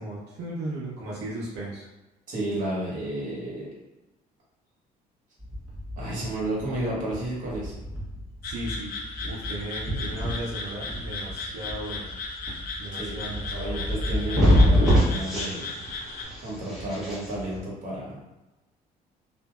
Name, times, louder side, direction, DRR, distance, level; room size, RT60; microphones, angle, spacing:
voice 1, 0.0-1.9 8.4-8.9 9.2-12.1 12.8-13.9, right 1 dB, 85° right, -6 dB, 0.6 m, -36 dB
voice 2, 2.3-3.7 6.0-7.7 12.9-13.1 13.5-15.7 16.4-18.1, right 1 dB, 50° right, -5 dB, 1.1 m, -32 dB
sound 1, 5.4-17.6, equal, 5° right, 1.3 m, -27 dB
sound 2, 8.4-16.2, left 3 dB, 60° left, 0.5 m, -36 dB
2.8 x 2.6 x 2.2 m, 1.0 s
cardioid pair, 110°, 17 cm